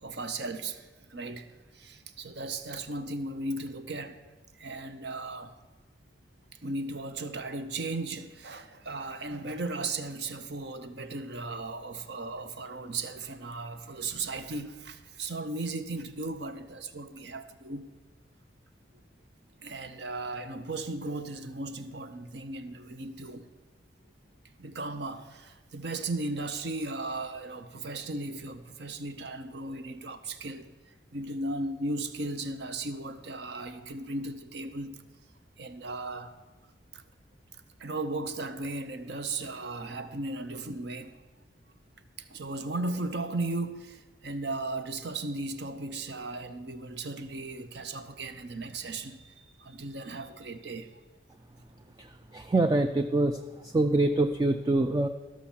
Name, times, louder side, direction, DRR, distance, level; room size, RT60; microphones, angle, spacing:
voice 1, 0.0-1.5 1.7-4.2 4.6-5.5 6.6-17.9 19.6-23.5 24.6-35.0 35.6-36.4 36.9-37.0 37.8-41.2 42.2-51.0, right 2 dB, 60° right, 0.8 m, -36 dB
voice 2, 52.0-55.1, right 2 dB, 20° right, 0.3 m, -25 dB
13.5 x 6.3 x 7.1 m
head